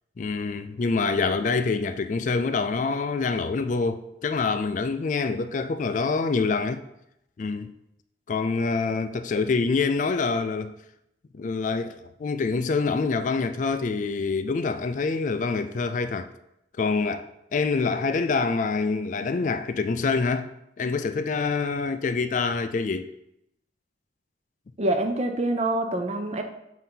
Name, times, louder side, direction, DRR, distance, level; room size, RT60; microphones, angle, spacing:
voice 1, 0.2-6.8 7.4-7.7 8.3-10.7 11.3-11.9 12.2-16.3 16.8-20.5 20.8-23.1, left 4 dB, 45° left, 0.3 m, -26 dB
voice 2, 24.8-26.4, right 2 dB, 35° right, 0.5 m, -25 dB
7.7 x 2.8 x 5.3 m
head